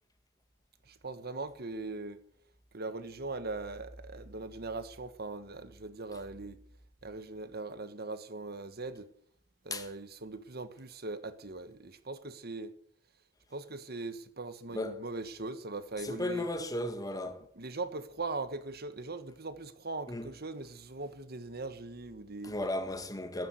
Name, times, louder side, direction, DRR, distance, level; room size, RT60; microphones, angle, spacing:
voice 1, 0.9-2.2 2.7-6.6 7.0-9.1 9.6-12.7 13.5-16.5 17.5-22.5, right 3 dB, 55° right, 1.5 m, -40 dB
voice 2, 14.7-15.0 16.0-17.4 20.1-20.3 22.4-23.5, left 1 dB, 20° left, 1.9 m, -35 dB
13.5 x 11.0 x 8.1 m
head